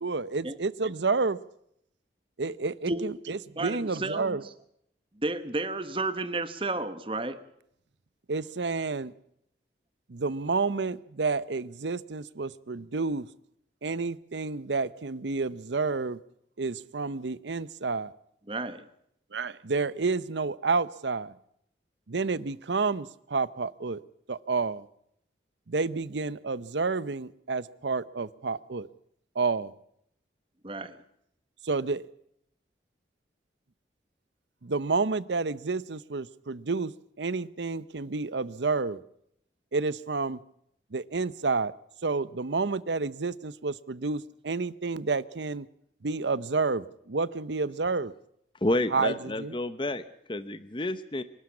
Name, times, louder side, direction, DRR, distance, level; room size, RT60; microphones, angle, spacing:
voice 1, 0.0-1.4 2.4-4.5 8.3-9.1 10.1-13.3 13.8-16.2 16.6-18.1 19.3-21.3 22.1-24.0 24.3-24.8 25.7-28.9 29.4-29.7 31.6-32.1 34.6-36.9 37.2-39.0 39.7-40.4 40.9-41.7 42.0-45.7 46.0-48.1 48.9-49.6, right 4 dB, 80° right, 18 dB, 0.8 m, -30 dB
voice 2, 3.6-4.4 5.2-7.4 18.5-18.8 30.6-31.0, right 2 dB, 30° right, 12 dB, 1.1 m, -32 dB
voice 3, 48.6-50.0 50.3-51.2, left 1 dB, 25° left, 13 dB, 0.8 m, -29 dB
25.0 x 12.5 x 8.5 m, 0.74 s
head